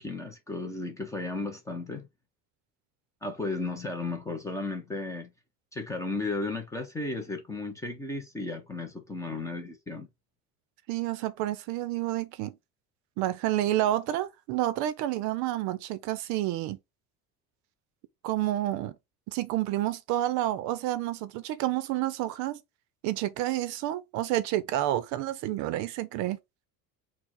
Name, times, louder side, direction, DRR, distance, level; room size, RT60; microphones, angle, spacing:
voice 1, 0.0-2.1 3.2-5.3 5.7-10.1, left 3 dB, 10° left, 0.4 m, -34 dB
voice 2, 10.9-12.5 13.2-16.8 18.2-19.0 19.3-22.6 23.0-26.4, right 14 dB, 55° right, 0.5 m, -29 dB
4.5 x 2.1 x 4.1 m
cardioid pair, 175°, 35 cm